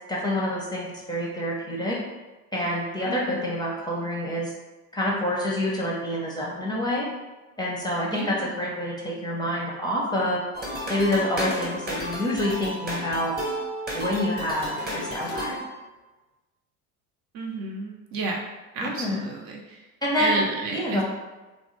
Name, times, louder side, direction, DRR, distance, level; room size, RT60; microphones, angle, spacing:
voice 1, 0.1-2.0 2.5-4.5 4.9-7.1 7.6-10.4 10.9-13.3 13.9-15.6 18.8-19.2 20.0-20.4 20.7-21.0, left 1 dB, 10° left, -4 dB, 0.6 m, -27 dB
voice 2, 3.0-3.6 8.1-8.6 17.3-18.4 18.7-19.9 20.2-21.0, right 3 dB, 50° right, 0 dB, 0.7 m, -31 dB
sound 1, 10.5-15.6, equal, 20° right, 0.9 m, -32 dB
sound 2, 11.6-12.5 12.7-12.8 14.5-15.8, left 4 dB, 85° left, 0.6 m, -41 dB
2.6 x 2.0 x 3.1 m, 1.2 s
hypercardioid pair, 70°, 44 cm